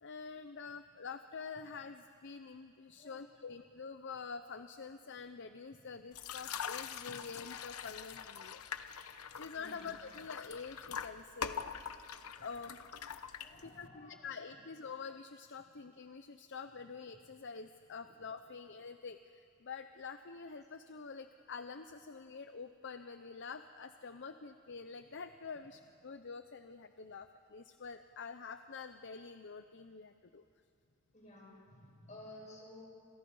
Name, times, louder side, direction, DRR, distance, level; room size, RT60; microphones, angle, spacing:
voice 1, 0.0-8.6 9.4-11.7 12.4-12.8 13.6-30.4, left 5 dB, 55° left, 9 dB, 0.7 m, -47 dB
sound 1, 6.1-13.9, left 7 dB, 80° left, 0.9 m, -44 dB
voice 2, 9.5-9.9 12.3-12.5 13.3-14.3 31.1-32.8, left 1 dB, 30° left, -2 dB, 6.4 m, -54 dB
28.0 x 28.0 x 5.5 m, 2.5 s
head